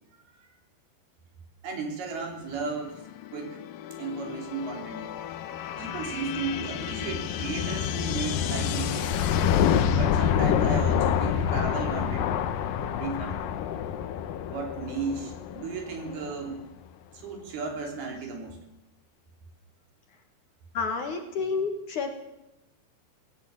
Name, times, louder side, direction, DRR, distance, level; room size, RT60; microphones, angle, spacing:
voice 1, 1.6-3.0 3.3-3.6 3.9-5.0 5.8-9.1 9.9-12.3 12.8-13.5 14.5-16.6 17.1-18.6, right 4 dB, 55° right, 3 dB, 4.7 m, -35 dB
sound 1, 3.1-16.5, left 8 dB, 80° left, 2.0 m, -28 dB
voice 2, 20.7-22.1, left 5 dB, 55° left, 5 dB, 2.4 m, -29 dB
18.5 x 17.0 x 8.6 m, 0.91 s
omnidirectional pair, 5.4 m